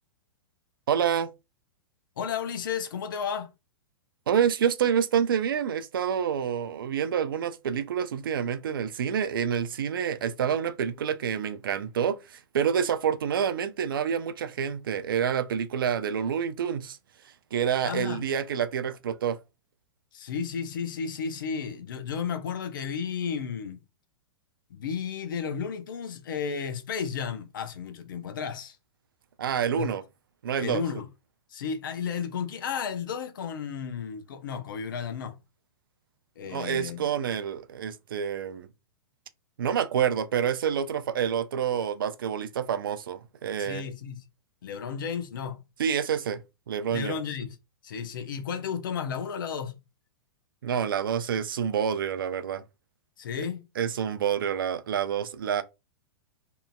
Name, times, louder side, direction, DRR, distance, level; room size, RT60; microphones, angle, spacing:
voice 1, 0.9-1.3 4.3-17.0 17.5-19.4 29.4-30.0 30.4-30.8 36.5-38.7 39.6-43.9 45.8-46.4 46.7-47.2 50.6-52.6 53.8-55.6, right 8 dB, 60° right, 0.4 m, -28 dB
voice 2, 2.2-3.5 17.8-18.2 20.1-23.8 24.7-28.8 29.7-29.9 30.6-31.1 31.5-35.4 36.4-37.1 43.6-44.2 44.6-45.6 46.9-47.6 47.8-49.7 53.2-53.7, left 7 dB, 55° left, 0.5 m, -33 dB
2.8 x 2.5 x 2.2 m
figure-of-eight pair, 105°, 13 cm